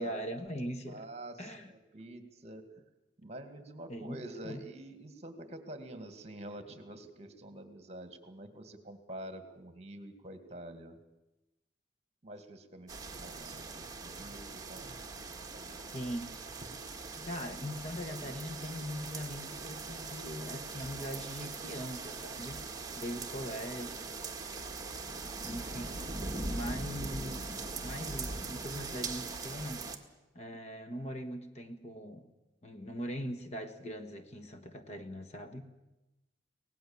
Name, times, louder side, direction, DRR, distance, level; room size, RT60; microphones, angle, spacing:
voice 1, 0.0-1.1 1.4-1.7 3.9-4.6 14.8-14.9 15.9-16.4 17.2-22.6 23.0-24.2 25.4-26.1 26.5-29.9 30.3-32.3 32.6-35.7, equal, 35° left, 8 dB, 1.5 m, -41 dB
voice 2, 0.6-2.6 3.2-11.0 12.2-16.0, right 1 dB, 35° right, 8 dB, 2.1 m, -47 dB
sound 1, 12.9-30.0, right 3 dB, 20° right, 1.7 m, -41 dB
24.5 x 18.0 x 7.2 m, 0.99 s
head